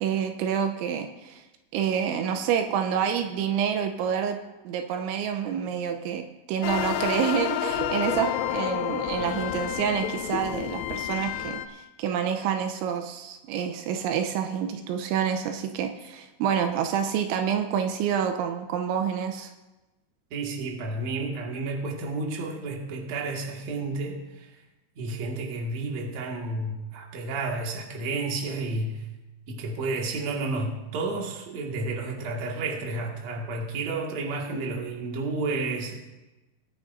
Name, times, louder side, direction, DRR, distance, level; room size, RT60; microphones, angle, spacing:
voice 1, 0.0-1.4 1.7-4.4 4.7-19.5, right 8 dB, 85° right, 6 dB, 3.0 m, -28 dB
sound 1, 6.6-11.7, left 12 dB, 85° left, 2.5 m, -29 dB
voice 2, 20.3-24.5 25.0-29.0 29.5-36.0, right 3 dB, 50° right, 0 dB, 2.2 m, -31 dB
22.5 x 10.0 x 2.6 m, 1.0 s
omnidirectional pair, 5.5 m